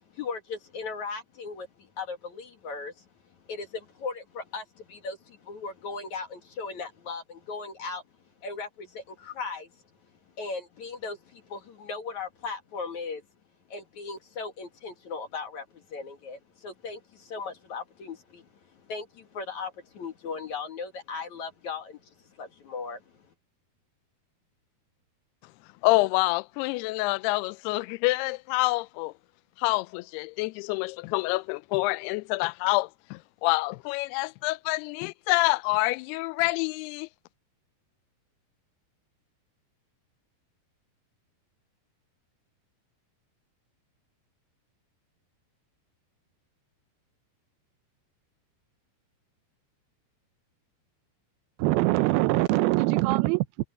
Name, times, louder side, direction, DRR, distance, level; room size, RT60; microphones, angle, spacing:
voice 1, 0.1-3.0 3.5-8.0 8.4-9.7 10.4-13.2 13.7-18.5 18.7-23.3, left 4 dB, 55° left, 3.0 m, -38 dB
voice 2, 25.8-29.1 29.6-37.1, left 22 dB, 85° left, 2.6 m, -27 dB
voice 3, 51.6-53.7, right 20 dB, 80° right, 2.4 m, -23 dB
omnidirectional pair, 4.6 m